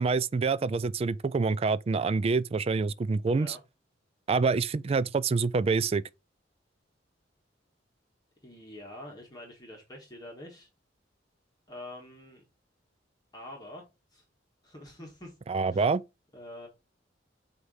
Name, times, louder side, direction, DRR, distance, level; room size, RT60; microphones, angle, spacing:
voice 1, 0.0-3.6 4.3-6.0 15.5-16.0, right 4 dB, 35° right, 0.3 m, -26 dB
voice 2, 3.3-3.6 8.4-10.7 11.7-12.4 13.3-13.8 14.1-14.2 14.6-15.3 15.7-15.8 16.3-16.7, left 1 dB, 20° left, 1.6 m, -45 dB
8.0 x 2.8 x 4.9 m
head